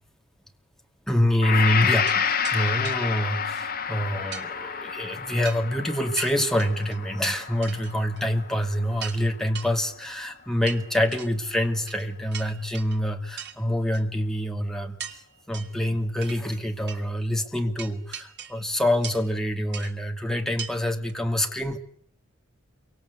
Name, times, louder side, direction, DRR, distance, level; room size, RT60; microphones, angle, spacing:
voice 1, 1.1-15.0 15.5-21.8, left 1 dB, ahead, 3 dB, 2.6 m, -26 dB
Gong, 1.4-9.5, left 7 dB, 50° left, 1.8 m, -29 dB
sound 1, 2.1-2.2 2.4-2.6 2.8-3.0 4.3-4.5 5.4-5.7 6.2-7.4 7.6-8.2 8.5-8.6 9.0-9.2 9.6-9.7 10.7-11.3 11.9-12.1 12.3-13.0 13.4-13.6 13.9-14.0 15.0-15.2 15.5-15.8 16.2-16.6 16.9-17.0 17.8-18.6 19.0-19.3 19.7-19.9 20.6-20.7 21.1-21.2, right 8 dB, 60° right, 2.5 m, -38 dB
28.5 x 24.5 x 8.3 m, 0.62 s
head